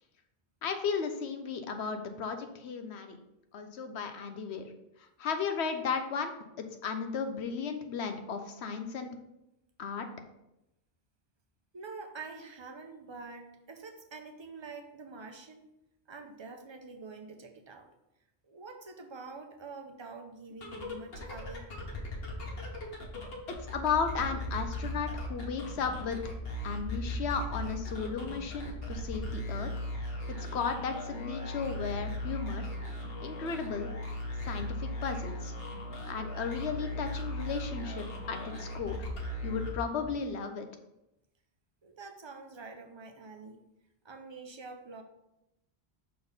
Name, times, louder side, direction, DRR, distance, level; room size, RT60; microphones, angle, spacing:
voice 1, 0.6-3.2 3.5-4.7 5.2-9.1 9.8-10.1 23.6-26.2 26.6-29.7 30.4-32.7 33.2-33.9 34.4-35.5 36.1-39.1 39.4-40.7, left 6 dB, 80° left, 6 dB, 1.0 m, -35 dB
voice 2, 11.7-15.6 16.1-17.9 18.5-21.7 41.8-43.6 44.0-45.0, right 4 dB, 30° right, 5 dB, 0.7 m, -46 dB
sound 1, 20.5-40.3, left 1 dB, 65° left, 1.4 m, -38 dB
5.9 x 4.2 x 5.1 m, 0.88 s
omnidirectional pair, 1.1 m